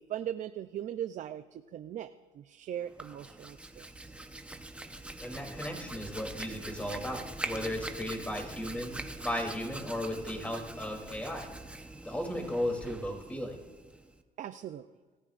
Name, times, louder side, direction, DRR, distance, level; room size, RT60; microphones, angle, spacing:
voice 1, 0.0-2.1 2.3-3.9 14.4-14.9, right 11 dB, 55° right, 10 dB, 0.6 m, -39 dB
Hands, 2.8-14.2, right 2 dB, 10° right, 1.0 m, -43 dB
voice 2, 5.2-11.5 12.0-13.6, left 1 dB, 10° left, 1 dB, 3.1 m, -35 dB
26.0 x 14.5 x 2.6 m, 1.4 s
cardioid pair, 115°, 15 cm